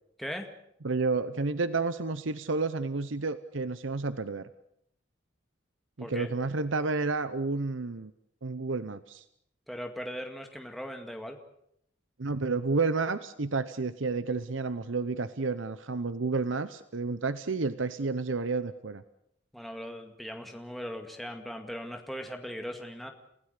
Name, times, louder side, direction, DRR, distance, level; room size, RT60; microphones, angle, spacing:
voice 1, 0.8-4.5 6.0-8.1 8.4-9.2 12.2-19.0, right 3 dB, 80° right, 13 dB, 0.9 m, -30 dB
voice 2, 6.0-6.3 9.7-11.4 19.5-23.1, equal, ahead, 3 dB, 2.0 m, -39 dB
30.0 x 16.5 x 6.7 m, 0.73 s
head